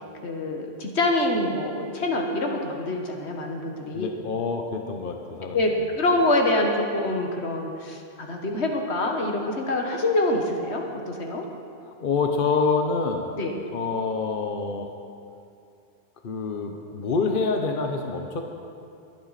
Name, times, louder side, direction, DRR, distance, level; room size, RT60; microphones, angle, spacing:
voice 1, 0.2-4.1 5.5-11.4 13.4-13.5, left 2 dB, 80° left, 2 dB, 1.7 m, -25 dB
voice 2, 3.9-5.7 12.0-13.3 13.7-14.9 16.2-18.5, left 4 dB, 55° left, 3 dB, 1.0 m, -26 dB
22.0 x 9.2 x 4.1 m, 2.5 s
omnidirectional pair, 1.1 m